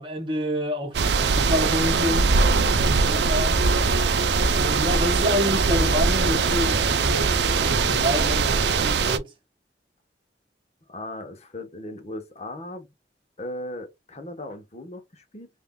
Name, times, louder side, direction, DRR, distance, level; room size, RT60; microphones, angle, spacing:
voice 1, 0.0-2.4 2.7-3.6 4.6-9.3, left 1 dB, 30° right, 1.3 m, -28 dB
sound 1, 0.9-9.2, right 4 dB, 70° right, 0.5 m, -22 dB
sound 2, 1.8-8.5, equal, 5° right, 2.1 m, -32 dB
voice 2, 10.9-12.9 13.4-15.5, left 1 dB, 40° left, 1.0 m, -37 dB
5.7 x 2.7 x 2.2 m
head